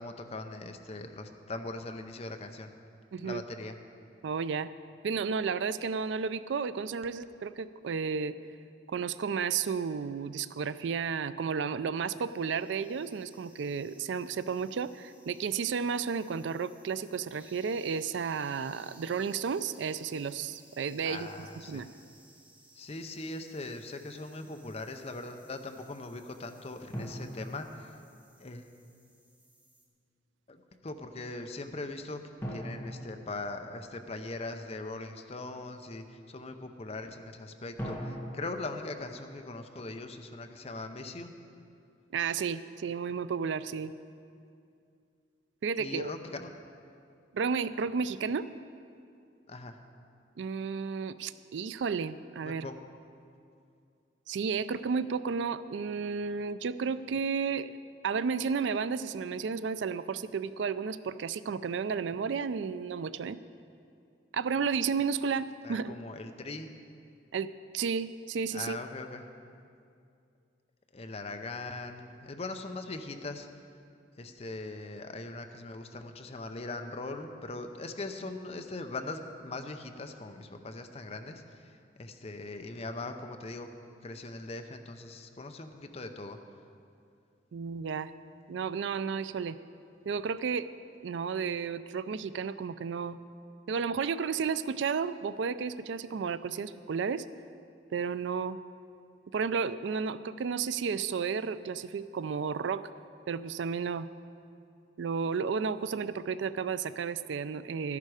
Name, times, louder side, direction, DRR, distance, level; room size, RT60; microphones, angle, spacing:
voice 1, 0.0-2.7 3.2-3.8 21.0-21.8 22.8-28.0 28.4-28.7 30.5-32.2 32.5-41.3 45.8-46.5 49.5-49.8 52.4-52.7 65.6-66.7 68.5-69.2 70.9-73.5 74.2-83.7 84.0-86.4, left 2 dB, 35° left, 6 dB, 0.7 m, -40 dB
voice 2, 3.1-3.4 4.2-4.7 5.0-8.4 8.9-21.9 42.1-43.9 45.6-46.1 47.3-48.5 50.4-52.7 54.3-57.7 58.0-63.4 64.3-66.0 67.3-68.8 87.5-88.1 88.5-89.6 90.1-90.7 91.0-93.2 93.7-97.2 97.9-98.6 99.3-102.8 103.3-104.1 105.0-108.0, right 6 dB, 80° right, 15 dB, 0.4 m, -32 dB
sound 1, 12.2-29.9, right 1 dB, 10° right, 1.3 m, -60 dB
sound 2, 26.9-28.5 32.4-34.3 37.8-40.0, equal, 15° left, 1.9 m, -42 dB
13.0 x 11.0 x 4.9 m, 2.4 s
head